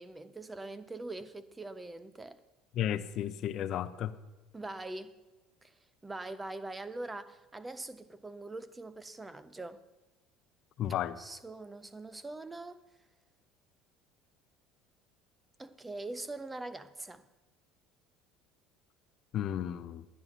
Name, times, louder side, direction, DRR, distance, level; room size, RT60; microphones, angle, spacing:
voice 1, 0.0-2.4 4.5-5.1 5.6-5.7 6.0-9.8 11.2-12.8 15.6-17.2, right 2 dB, 10° right, 0.5 m, -43 dB
voice 2, 2.7-4.2 10.8-11.2 19.3-20.1, left 10 dB, 45° left, 0.5 m, -33 dB
11.0 x 9.5 x 5.7 m
cardioid pair, 150°, 0 cm